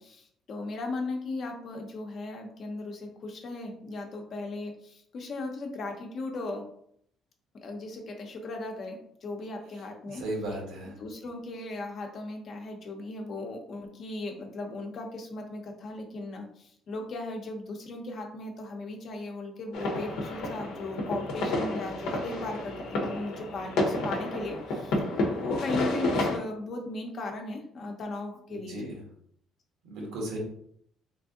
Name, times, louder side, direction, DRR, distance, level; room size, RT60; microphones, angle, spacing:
voice 1, 0.0-6.6 7.6-10.2 10.8-29.0, left 2 dB, 50° left, 3 dB, 0.8 m, -37 dB
voice 2, 10.1-10.9 28.5-29.0 29.8-30.4, right 1 dB, 85° right, -2 dB, 1.5 m, -35 dB
sound 1, 19.7-26.4, left 2 dB, 85° left, 0.8 m, -30 dB
3.3 x 2.5 x 3.7 m, 0.68 s
cardioid pair, 110°, 0 cm